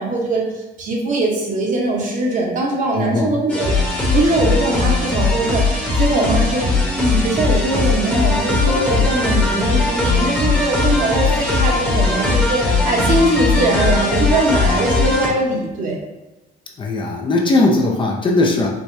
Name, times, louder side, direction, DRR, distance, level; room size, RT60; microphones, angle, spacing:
voice 1, 0.0-3.7 4.1-5.6 5.9-6.7 7.0-16.0, right 2 dB, 50° right, -2 dB, 0.9 m, -20 dB
voice 2, 3.0-3.3 16.8-18.7, left 2 dB, 30° left, 0 dB, 0.5 m, -18 dB
sound 1, 3.5-15.3, left 3 dB, 10° left, 0.9 m, -19 dB
4.6 x 2.1 x 2.6 m, 1.0 s
cardioid pair, 110°, 17 cm